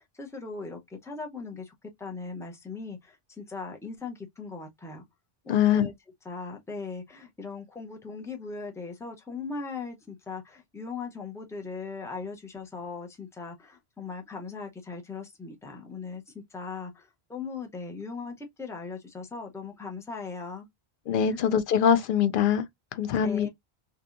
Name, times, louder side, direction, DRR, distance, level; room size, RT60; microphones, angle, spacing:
voice 1, 0.0-5.0 5.5-5.9 6.2-20.7 21.3-21.4 23.2-23.5, left 4 dB, 5° left, 0.4 m, -39 dB
voice 2, 5.5-5.9 21.1-22.6 23.0-23.5, left 8 dB, 65° left, 0.7 m, -23 dB
2.8 x 2.3 x 2.4 m
omnidirectional pair, 1.0 m